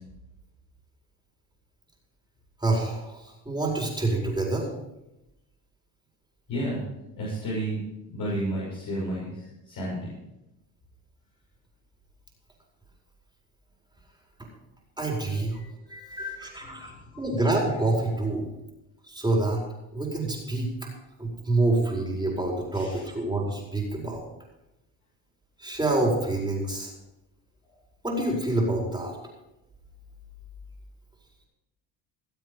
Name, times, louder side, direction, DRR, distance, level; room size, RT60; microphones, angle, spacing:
voice 1, 2.6-4.7 14.4-14.5 15.0-15.6 15.9-16.9 17.2-18.5 19.0-19.6 19.9-20.9 21.2-24.2 25.6-26.9 28.0-29.2, right 2 dB, 10° right, -2 dB, 4.9 m, -27 dB
voice 2, 6.5-6.8 7.2-10.1 15.5-16.0 16.6-17.2 22.7-23.0, right 1 dB, 50° left, -7 dB, 6.7 m, -33 dB
20.0 x 7.8 x 5.3 m, 0.93 s
supercardioid pair, 85°, 42 cm